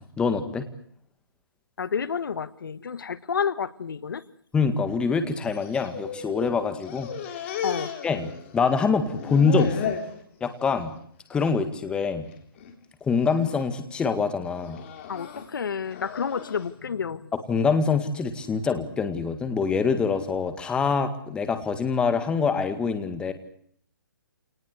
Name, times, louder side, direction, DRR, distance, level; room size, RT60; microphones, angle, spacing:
voice 1, 0.2-0.7 4.5-7.1 7.4-7.6 8.0-10.0 10.4-10.9 11.3-12.3 13.0-14.8 17.5-23.3, left 5 dB, 10° left, 9 dB, 1.9 m, -25 dB
voice 2, 1.8-4.2 7.6-7.9 15.1-17.3, left 6 dB, 75° left, 15 dB, 1.5 m, -30 dB
sound 1, 5.4-6.5 6.8-8.7 9.0-10.1 10.6-11.0 11.3-11.5 12.3-12.7 13.2-13.6 14.4-16.6, left 7 dB, 35° left, 3.8 m, -35 dB
28.0 x 19.5 x 8.1 m, 0.64 s
hypercardioid pair, 160°, 11 cm